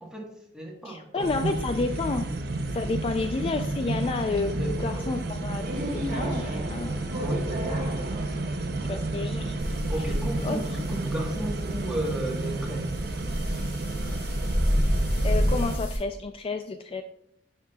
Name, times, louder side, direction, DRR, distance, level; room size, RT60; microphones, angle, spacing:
voice 1, 0.0-1.3 4.5-5.2 7.2-7.7 9.7-12.9, right 1 dB, 5° right, -2 dB, 1.3 m, -34 dB
voice 2, 0.8-2.3 2.7-5.6 5.9-7.3 8.9-9.6 10.4-10.6 15.2-17.0, left 3 dB, 30° left, 7 dB, 0.3 m, -30 dB
sound 1, 1.2-15.8, right 2 dB, 60° right, 0.6 m, -32 dB
sound 2, 5.6-12.2, right 1 dB, 45° right, 1.3 m, -37 dB
sound 3, 9.6-16.0, equal, 80° left, 2.8 m, -29 dB
10.5 x 5.5 x 2.3 m, 0.76 s
head